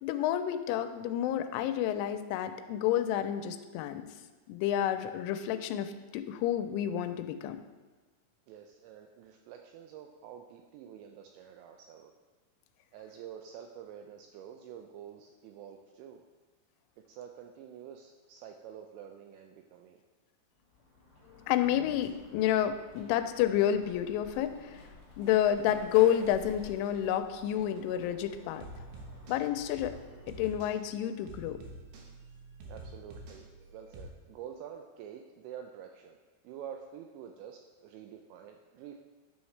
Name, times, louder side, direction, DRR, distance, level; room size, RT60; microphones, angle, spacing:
voice 1, 0.0-4.1 4.5-7.6 21.5-24.8 25.2-28.7 29.3-30.0 30.3-31.6, left 11 dB, 85° left, 9 dB, 3.0 m, -29 dB
voice 2, 8.5-12.1 12.9-16.2 17.1-20.0 32.7-33.5 33.7-36.2 36.4-39.0, right 9 dB, 85° right, 4 dB, 2.6 m, -48 dB
sound 1, 20.5-31.3, left 2 dB, 10° right, 2.0 m, -53 dB
sound 2, 28.2-34.0, right 2 dB, 70° right, 2.7 m, -48 dB
10.5 x 7.1 x 3.2 m, 1.2 s
omnidirectional pair, 5.5 m